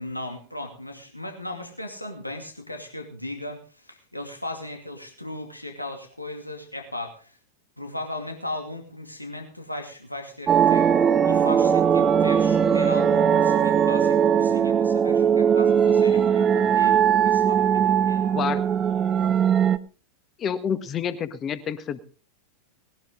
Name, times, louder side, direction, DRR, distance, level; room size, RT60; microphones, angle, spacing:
voice 1, 0.0-7.4 7.8-10.9 11.2-18.6, left 1 dB, 85° left, 3 dB, 2.5 m, -37 dB
sound 1, 10.5-19.8, right 8 dB, 25° right, 0.8 m, -20 dB
voice 2, 20.4-22.0, left 8 dB, 25° left, 13 dB, 1.6 m, -28 dB
19.5 x 11.5 x 3.9 m, 0.37 s
figure-of-eight pair, 90°, 0 cm